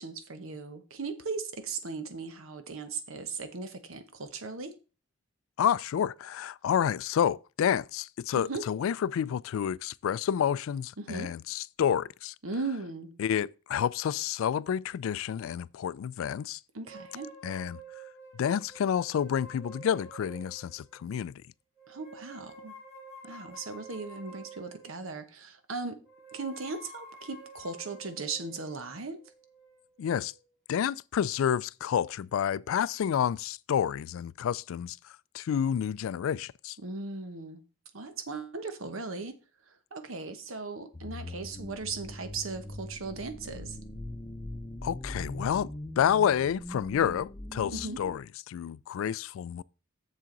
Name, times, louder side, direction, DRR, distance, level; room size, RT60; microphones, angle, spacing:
voice 1, 0.0-4.7 8.3-8.6 11.0-11.3 12.4-13.2 16.7-17.3 21.9-22.7 23.2-26.0 26.3-29.2 36.8-37.6 37.9-39.4 39.7-43.8 47.6-48.0, right 4 dB, 85° right, 1.1 m, -38 dB
voice 2, 5.6-12.3 13.2-16.6 17.4-17.8 18.3-21.4 30.0-30.3 30.7-35.0 35.3-36.8 44.8-49.6, left 8 dB, 80° left, 0.3 m, -29 dB
sound 1, 16.8-21.0 21.8-25.2 26.0-30.4, right 2 dB, 15° right, 4.2 m, -50 dB
sound 2, 40.9-48.2, left 1 dB, 20° left, 0.8 m, -41 dB
7.4 x 7.2 x 3.9 m
head